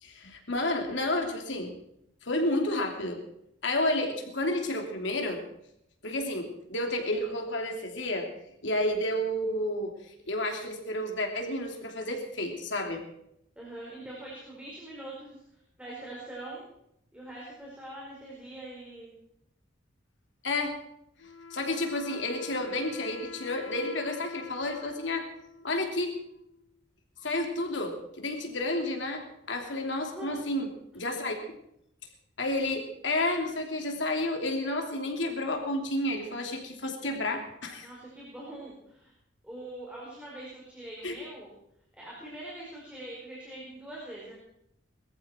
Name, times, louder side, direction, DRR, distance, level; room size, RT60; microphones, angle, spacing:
voice 1, 0.0-1.7 2.2-3.2 3.6-5.4 6.0-8.3 8.6-13.0 20.4-20.7 21.5-25.3 25.6-26.1 27.2-30.7 30.9-31.4 32.4-37.9 41.0-41.1, left 1 dB, 70° left, 3 dB, 3.0 m, -31 dB
voice 2, 13.5-15.4 15.8-16.7 17.1-19.1 30.1-30.3 37.8-39.1 39.4-41.5 42.0-44.3, right 1 dB, 5° right, -5 dB, 4.9 m, -43 dB
Wind instrument woodwind instrument, 21.2-26.7, left 4 dB, 90° left, 1.4 m, -46 dB
21.5 x 14.0 x 4.5 m, 0.77 s
head